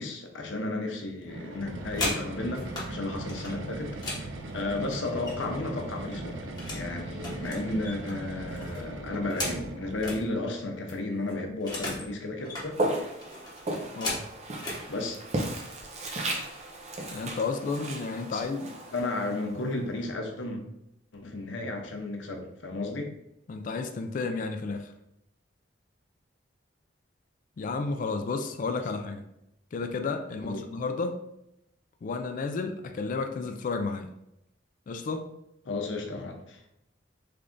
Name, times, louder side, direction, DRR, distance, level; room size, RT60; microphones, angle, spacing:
voice 1, 0.0-4.2 4.5-6.4 6.7-12.8 13.7-13.8 14.6-15.2 18.3-18.5 18.9-20.6 21.1-23.1 30.4-30.7 35.7-36.8, left 2 dB, 75° left, 3 dB, 0.6 m, -33 dB
sound 1, 1.2-10.3, right 2 dB, 85° right, 0.5 m, -39 dB
sound 2, 1.6-2.9 3.3-5.6 5.9-6.9 7.2-10.2 10.6-10.7 10.9-12.1 12.4-12.7 13.2-14.8 15.7-15.8 16.2-16.5 16.8-17.3, left 2 dB, 20° left, 1.0 m, -37 dB
Walk footsteps, 12.7-19.8, right 1 dB, 35° right, 0.6 m, -35 dB
voice 2, 14.0-14.3 17.1-18.7 23.5-24.9 27.6-29.2 29.7-31.2 32.0-34.1 34.9-35.3, left 4 dB, 45° left, 6 dB, 0.3 m, -32 dB
3.3 x 2.5 x 3.6 m, 0.83 s
head